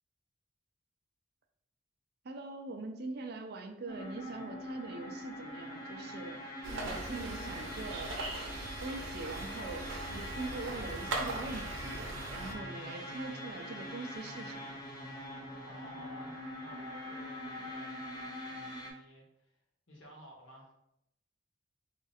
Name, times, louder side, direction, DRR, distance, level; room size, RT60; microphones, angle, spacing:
voice 1, 2.2-6.4 6.8-8.2 8.8-14.7, right 2 dB, 55° right, 5 dB, 0.4 m, -43 dB
sound 1, 3.9-18.9, left 1 dB, 20° left, 0.7 m, -43 dB
sound 2, 6.6-12.5, right 2 dB, 90° right, 0.7 m, -40 dB
voice 2, 15.6-19.6 19.9-20.7, equal, 75° left, -2 dB, 1.3 m, -55 dB
3.6 x 2.4 x 4.1 m, 0.80 s
head